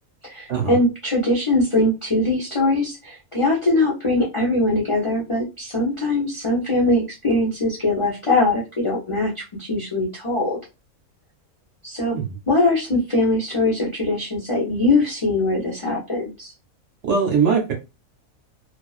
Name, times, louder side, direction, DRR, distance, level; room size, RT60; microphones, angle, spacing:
voice 1, 0.2-10.6 11.8-12.2 12.5-16.5, left 2 dB, 40° left, -3 dB, 0.4 m, -21 dB
voice 2, 17.0-17.7, right 6 dB, 60° right, 2 dB, 0.9 m, -20 dB
2.4 x 2.3 x 2.3 m, 0.27 s
omnidirectional pair, 1.5 m